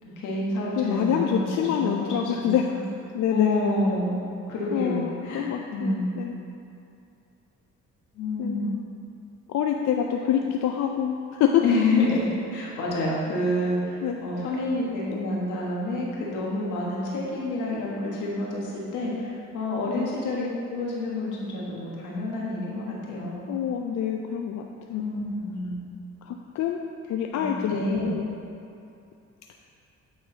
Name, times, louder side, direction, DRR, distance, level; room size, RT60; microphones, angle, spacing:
voice 1, 0.2-2.8 3.3-5.4 5.7-6.2 8.1-8.7 11.6-23.5 24.9-25.8 27.3-28.1, left 2 dB, 85° left, -4 dB, 1.5 m, -28 dB
voice 2, 0.8-2.6 3.1-3.7 4.7-6.3 8.4-8.8 9.5-11.6 14.0-14.2 19.9-20.1 23.5-25.0 26.3-26.8 27.1-28.3, left 9 dB, 65° left, 2 dB, 0.5 m, -26 dB
8.7 x 3.9 x 4.0 m, 2.6 s
cardioid pair, 90°, 30 cm